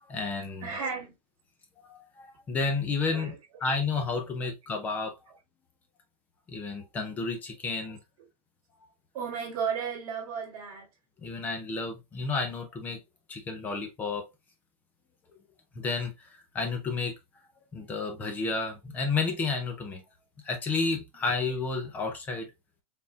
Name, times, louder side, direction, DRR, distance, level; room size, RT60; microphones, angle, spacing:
voice 1, 0.1-0.7 1.8-3.4 3.6-5.2 6.5-8.0 11.2-13.0 13.3-14.3 15.8-17.2 17.7-20.0 20.4-22.5, left 4 dB, 10° left, 0.4 m, -31 dB
voice 2, 0.6-1.1 3.1-3.4 9.1-10.9, right 6 dB, 30° right, 1.3 m, -34 dB
4.0 x 3.5 x 2.3 m
supercardioid pair, 170°, 19 cm